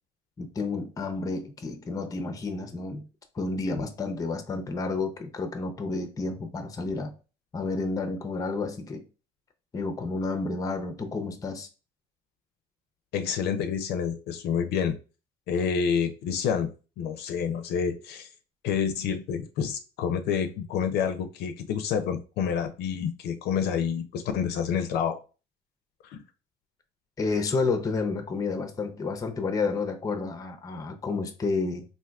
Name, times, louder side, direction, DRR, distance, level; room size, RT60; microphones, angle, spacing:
voice 1, 0.4-3.1 3.4-7.1 7.5-9.0 9.7-11.7 27.2-31.8, left 3 dB, 20° left, 0.5 m, -30 dB
voice 2, 13.1-15.0 15.5-18.3 18.6-25.2 26.0-26.2, left 7 dB, 75° left, 0.4 m, -28 dB
3.5 x 2.5 x 2.2 m
cardioid pair, 110°, 17 cm